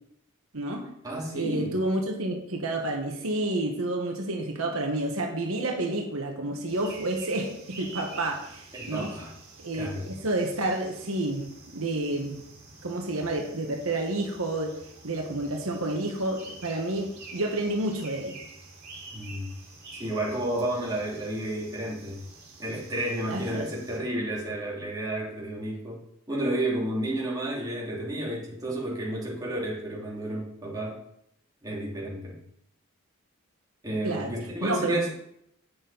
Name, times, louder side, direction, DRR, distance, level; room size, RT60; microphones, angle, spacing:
voice 1, 0.5-0.9 1.3-9.1 9.6-12.4 12.8-14.7 15.0-18.4 23.3-23.7 34.0-34.3 34.6-35.1, right 2 dB, 90° right, 1 dB, 1.4 m, -30 dB
voice 2, 1.0-1.7 8.7-9.3 9.7-10.1 19.1-19.5 20.0-22.2 22.6-26.0 26.3-31.0 31.6-32.4 33.8-35.1, right 1 dB, 20° right, -5 dB, 2.7 m, -31 dB
sound 1, 6.7-24.0, right 3 dB, 50° right, 3.4 m, -48 dB
8.5 x 7.0 x 4.1 m, 0.76 s
head